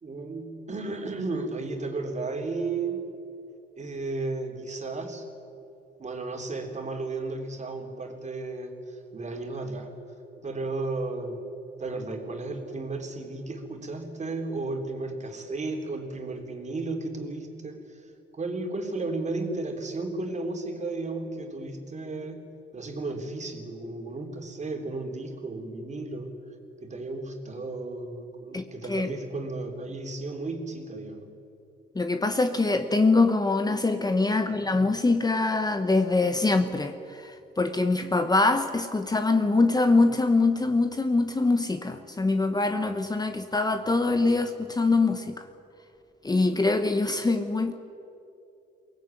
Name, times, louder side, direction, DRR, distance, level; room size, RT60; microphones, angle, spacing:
voice 1, 0.0-3.0 3.8-5.3 6.0-9.9 10.4-11.4 11.8-22.5 22.7-26.3 26.8-31.3 34.3-34.8, right 3 dB, 35° right, 3 dB, 3.6 m, -34 dB
voice 2, 28.5-29.1 31.9-45.4 46.2-47.7, left 3 dB, 20° left, 8 dB, 1.1 m, -24 dB
23.0 x 18.0 x 9.2 m, 2.7 s
cardioid pair, 90°, 20 cm